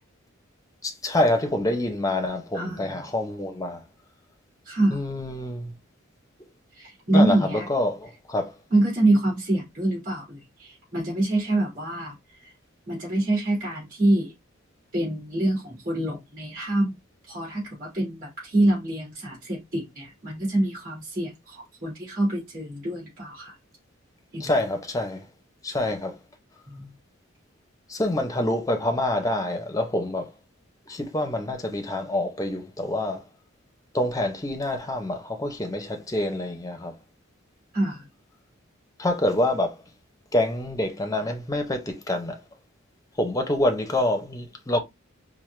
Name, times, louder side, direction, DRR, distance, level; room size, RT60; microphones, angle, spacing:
voice 1, 0.8-3.8 4.9-5.7 7.1-8.5 24.4-25.2 25.6-26.2 27.9-30.3 30.9-33.2 33.9-36.9 39.0-39.8 40.3-42.4 43.2-44.8, left 1 dB, 15° left, 0.7 m, -26 dB
voice 2, 2.5-3.0 4.7-5.0 6.7-7.7 8.7-12.5 12.9-14.3 14.9-17.0 17.3-23.5 24.3-24.6 26.7-26.9 37.7-38.0, right 1 dB, 45° right, 2.3 m, -25 dB
4.6 x 2.1 x 3.1 m
head